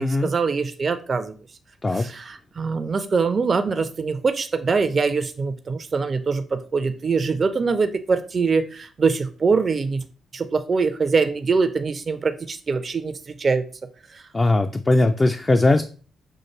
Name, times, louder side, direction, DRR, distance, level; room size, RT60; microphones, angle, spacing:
voice 1, 0.0-1.3 1.9-10.0 10.3-13.6 14.1-14.2, right 4 dB, 45° right, 10 dB, 0.4 m, -23 dB
voice 2, 14.3-15.8, left 2 dB, 30° left, 6 dB, 0.4 m, -19 dB
5.6 x 2.5 x 2.9 m, 0.38 s
hypercardioid pair, 40°, 0 cm